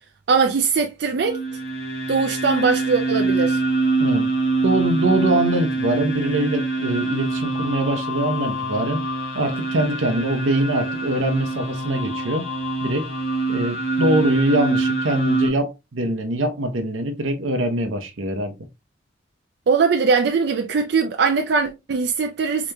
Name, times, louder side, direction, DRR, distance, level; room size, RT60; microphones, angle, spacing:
voice 1, 0.3-1.4 2.1-3.6 19.7-22.7, right 5 dB, 55° right, 0.4 m, -20 dB
sound 1, 1.2-15.5, right 3 dB, 85° left, 1.1 m, -24 dB
voice 2, 4.6-9.0 9.3-12.5 12.8-13.1 13.5-18.5, right 1 dB, 80° right, 0.8 m, -23 dB
4.9 x 2.9 x 2.2 m
head